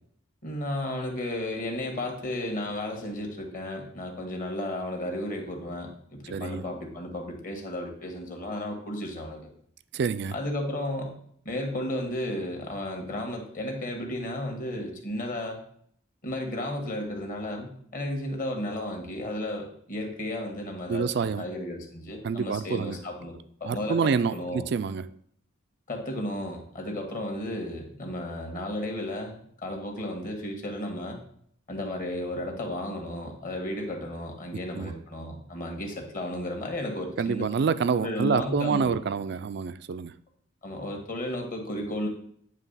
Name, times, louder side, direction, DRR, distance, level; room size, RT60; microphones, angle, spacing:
voice 1, 0.4-9.5 10.3-11.1 11.4-15.6 16.2-23.3 23.6-24.6 25.9-31.2 31.7-37.5 38.0-39.0 40.6-42.1, left 1 dB, 45° left, 1.5 m, -33 dB
voice 2, 6.3-6.6 9.9-10.4 20.9-21.5 22.2-23.0 23.6-25.1 34.7-34.9 37.2-40.1, right 5 dB, 55° right, 0.3 m, -27 dB
9.2 x 3.2 x 5.5 m
head